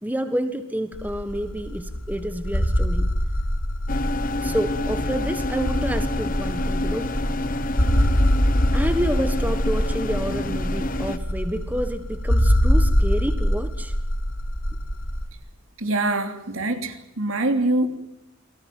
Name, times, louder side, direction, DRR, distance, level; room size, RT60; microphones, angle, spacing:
voice 1, 0.0-3.1 4.4-7.1 8.7-13.9, equal, 10° right, 9 dB, 1.5 m, -29 dB
sound 1, 0.9-15.3, equal, 75° left, 4.1 m, -24 dB
sound 2, 3.9-11.2, left 2 dB, 40° left, 1.2 m, -29 dB
voice 2, 15.8-17.9, right 2 dB, 70° right, 7 dB, 3.1 m, -24 dB
28.5 x 19.5 x 9.3 m, 0.81 s
head